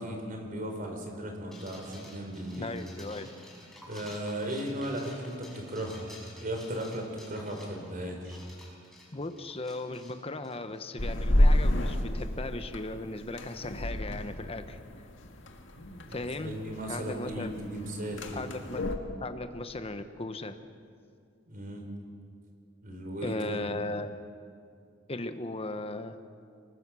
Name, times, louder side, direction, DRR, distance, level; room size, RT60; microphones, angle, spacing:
voice 1, 0.0-2.8 3.9-6.1 6.4-8.4 16.0-18.4 21.5-21.9 22.8-23.7, right 1 dB, 45° right, 3 dB, 4.1 m, -36 dB
sound 1, 1.5-11.1, left 1 dB, ahead, 5.8 m, -52 dB
voice 2, 2.6-3.3 9.1-14.8 16.1-16.6 16.9-17.5 18.3-18.9 19.2-20.6 23.2-24.1 25.1-26.2, left 2 dB, 30° left, 9 dB, 1.1 m, -37 dB
sound 2, 11.0-19.0, left 1 dB, 85° left, 1.9 m, -30 dB
25.0 x 20.5 x 6.3 m, 2.3 s
head